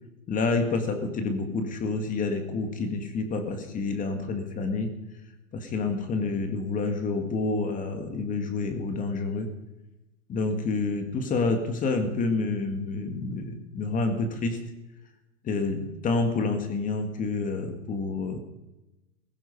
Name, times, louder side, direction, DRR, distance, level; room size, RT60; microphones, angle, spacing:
voice 1, 0.3-4.9 5.5-9.5 10.3-14.6 15.4-18.4, left 3 dB, 20° left, 7 dB, 1.9 m, -28 dB
16.5 x 15.5 x 5.4 m, 1.0 s
hypercardioid pair, 145°, 42 cm